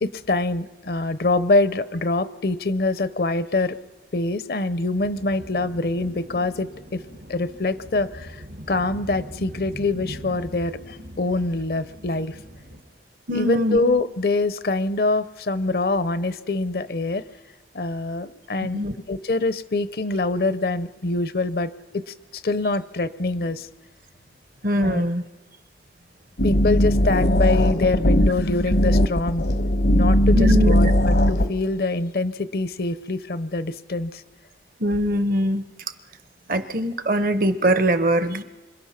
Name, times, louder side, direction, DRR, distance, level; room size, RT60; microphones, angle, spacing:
voice 1, 0.0-3.8 4.1-7.0 7.3-8.4 8.7-12.4 13.3-17.2 17.7-18.8 19.1-23.7 24.8-25.0 26.4-29.5 29.9-34.2, left 2 dB, 55° left, 14 dB, 0.7 m, -24 dB
sound 1, 5.0-12.8, equal, 80° right, 2.3 m, -41 dB
voice 2, 13.3-13.8 18.6-18.9 24.6-25.2 30.3-30.7 34.8-35.7 36.5-38.4, equal, 50° right, 11 dB, 0.9 m, -22 dB
sound 2, 26.4-31.5, equal, 75° left, 1.1 m, -18 dB
26.5 x 25.5 x 5.8 m, 1.3 s
head